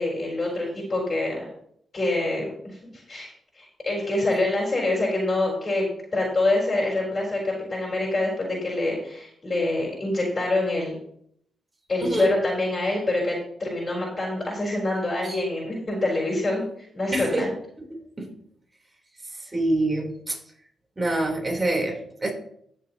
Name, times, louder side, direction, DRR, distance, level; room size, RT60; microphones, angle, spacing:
voice 1, 0.0-1.5 1.9-2.8 3.1-3.3 3.6-5.9 6.1-10.9 11.9-16.6 16.9-17.5, left 2 dB, 40° left, -4 dB, 4.2 m, -25 dB
voice 2, 12.0-12.4 15.2-15.4 17.1-17.5 17.8-17.9 18.2-18.3 19.5-20.4 21.0-22.3, right 2 dB, 25° right, 0 dB, 3.6 m, -26 dB
15.5 x 6.8 x 2.9 m, 0.70 s
supercardioid pair, 55°, 0 cm